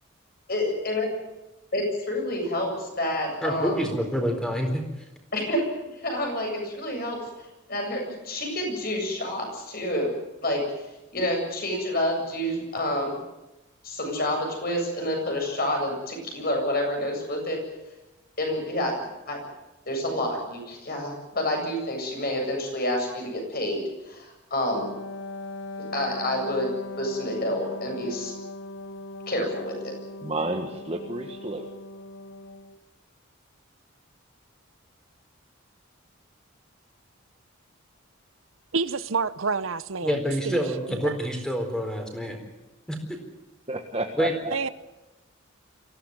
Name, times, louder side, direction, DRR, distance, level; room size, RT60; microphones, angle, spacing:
voice 1, 0.5-1.1 1.7-3.9 5.3-5.6 5.9-10.1 10.4-10.6 11.1-13.2 13.8-17.6 18.4-18.9 19.3-19.4 19.9-24.9 25.8-28.3 29.3-29.9, left 1 dB, 45° left, 7.9 m, -28 dB
voice 2, 3.4-4.8 40.0-42.4 42.9-43.2 44.2-44.3, equal, 5° left, 4.2 m, -27 dB
Wind instrument woodwind instrument, 24.7-32.8, left 2 dB, 70° left, 1.2 m, -39 dB
voice 3, 30.2-31.7 43.7-44.7, right 2 dB, 30° right, 1.6 m, -31 dB
voice 4, 38.7-40.2 40.5-40.6 40.9-41.1 44.5-44.7, right 4 dB, 75° right, 0.9 m, -28 dB
24.5 x 16.5 x 9.6 m
head